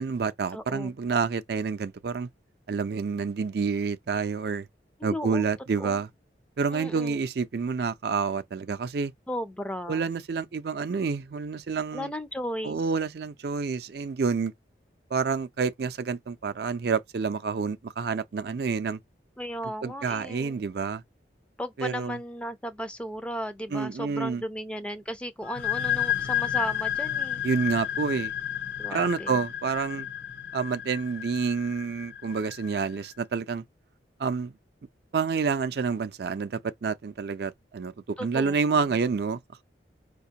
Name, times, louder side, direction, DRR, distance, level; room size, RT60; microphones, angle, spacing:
voice 1, 0.0-2.3 2.7-4.7 5.0-6.1 6.6-9.1 9.9-12.1 12.6-14.5 15.1-19.0 19.8-21.0 21.8-22.2 23.7-24.4 27.4-28.3 28.9-30.1 30.5-33.6 34.2-34.5 35.1-39.6, right 5 dB, 60° right, 0.4 m, -28 dB
voice 2, 0.5-0.9 5.0-5.5 5.8-6.0 6.7-7.2 9.3-10.1 11.9-12.9 19.4-20.7 21.6-27.4 28.8-29.4 38.2-39.0, equal, 5° left, 0.4 m, -35 dB
sound 1, 25.4-32.9, left 11 dB, 80° left, 0.7 m, -31 dB
4.9 x 2.3 x 2.7 m
head